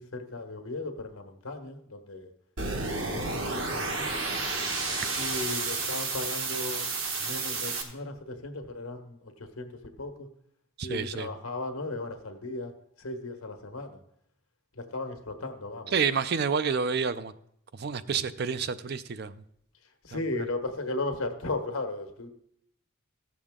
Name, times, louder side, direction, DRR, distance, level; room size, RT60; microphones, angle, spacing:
voice 1, 0.0-2.3 2.7-4.1 5.2-6.9 7.2-9.7 10.0-10.3 10.8-12.7 13.0-14.0 14.7-15.9 20.0-22.3, left 2 dB, 85° left, 5 dB, 1.3 m, -36 dB
sound 1, 2.6-7.8, right 3 dB, 65° right, 1.4 m, -31 dB
voice 2, 10.8-11.3 15.9-17.3 17.7-19.4 20.1-20.2, right 6 dB, 50° right, 13 dB, 0.4 m, -29 dB
16.0 x 7.1 x 3.6 m, 0.71 s
head